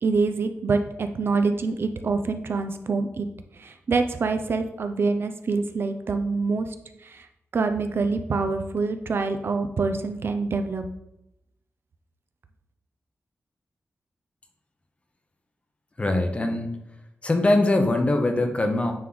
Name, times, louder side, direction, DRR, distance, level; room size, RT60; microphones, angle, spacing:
voice 1, 0.0-3.3 3.6-6.7 7.1-7.2 7.5-10.8, right 4 dB, 55° right, 8 dB, 0.5 m, -25 dB
voice 2, 16.0-16.7 17.2-18.9, left 2 dB, 25° left, 5 dB, 0.8 m, -22 dB
9.2 x 3.1 x 3.9 m, 0.85 s
wide cardioid pair, 145°, 5 cm